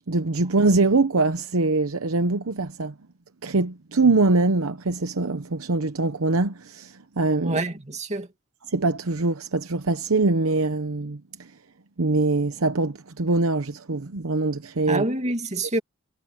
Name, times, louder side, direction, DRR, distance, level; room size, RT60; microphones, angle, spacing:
voice 1, 0.1-2.9 3.4-7.6 8.7-11.5 12.0-15.0, right 3 dB, 80° right, 0.9 m, -23 dB
voice 2, 7.4-8.3 14.9-15.8, right 2 dB, 30° right, 2.5 m, -27 dB
head